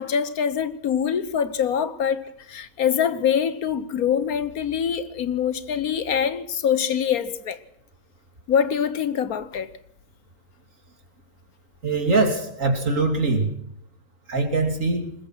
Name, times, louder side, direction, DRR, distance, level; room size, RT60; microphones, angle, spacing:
voice 1, 0.0-7.6 8.5-9.7, left 8 dB, 80° left, 1.6 m, -24 dB
voice 2, 11.8-13.5 14.3-15.1, right 3 dB, 60° right, 3.5 m, -22 dB
20.5 x 20.5 x 6.2 m
omnidirectional pair, 1.5 m